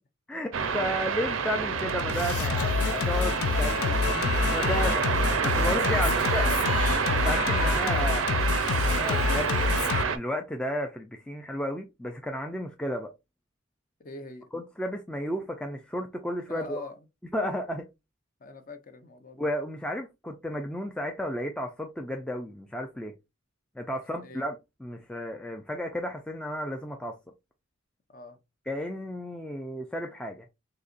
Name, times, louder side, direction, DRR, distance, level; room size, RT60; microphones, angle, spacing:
voice 1, 0.3-5.1 5.4-6.5 6.9-8.3 8.8-13.1 14.5-16.8 17.3-17.9 19.4-23.1 23.8-27.2 28.7-30.4, equal, 5° left, 0.3 m, -33 dB
sound 1, 0.5-10.2, right 6 dB, 65° right, 0.5 m, -28 dB
Singing, 1.7-10.0, left 5 dB, 80° left, 0.3 m, -28 dB
voice 2, 14.0-14.5 16.5-17.0 18.4-19.5 23.9-24.5 28.1-28.4, left 2 dB, 40° left, 0.6 m, -44 dB
4.0 x 2.9 x 2.4 m
head